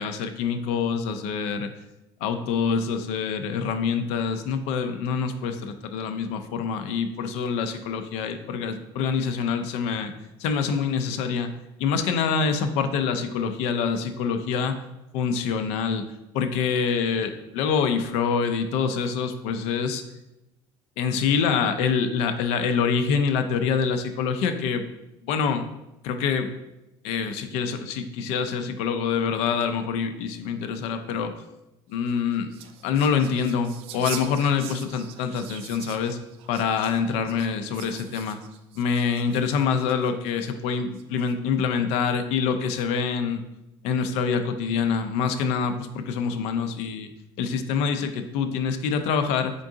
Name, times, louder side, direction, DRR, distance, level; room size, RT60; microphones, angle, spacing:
voice 1, 0.0-1.7 2.2-10.1 10.4-11.5 11.8-14.7 15.1-16.1 16.3-20.0 21.0-24.8 25.3-25.7 26.0-26.5 27.0-31.3 31.9-32.5 32.8-36.2 36.5-38.4 38.8-43.4 43.8-47.1 47.4-49.5, left 6 dB, 70° left, 8 dB, 0.5 m, -25 dB
sound 1, 31.9-40.3 40.9-41.5, right 10 dB, 60° right, 0.4 m, -43 dB
3.8 x 3.6 x 3.7 m, 0.94 s
cardioid pair, 140°, 11 cm